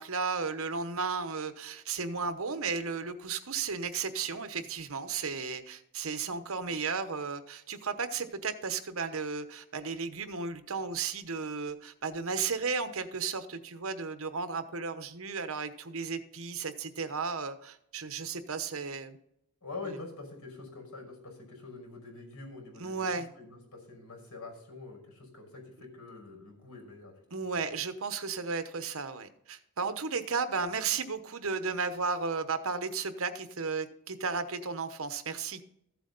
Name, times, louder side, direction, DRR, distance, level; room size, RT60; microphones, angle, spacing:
voice 1, 0.0-19.2 22.8-23.3 27.3-35.6, right 5 dB, 70° right, 10 dB, 1.0 m, -34 dB
voice 2, 19.6-23.1 23.4-27.1 27.4-27.6, left 3 dB, 85° left, 2 dB, 5.6 m, -45 dB
14.5 x 8.1 x 4.1 m, 0.75 s
head